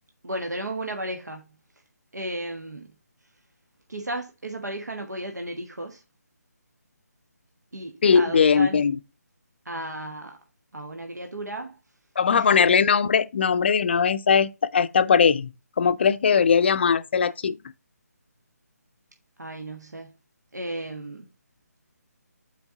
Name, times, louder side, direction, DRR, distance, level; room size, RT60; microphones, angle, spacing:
voice 1, 0.2-1.6 2.1-2.9 3.9-6.0 7.7-8.8 9.6-10.4 10.7-11.8 12.3-12.6 19.4-20.1 20.5-21.3, right 1 dB, 90° right, 1.3 m, -34 dB
voice 2, 8.0-9.0 12.2-15.5 15.8-17.6, left 6 dB, 40° left, 0.5 m, -20 dB
7.0 x 4.6 x 3.6 m
figure-of-eight pair, 155°, 9 cm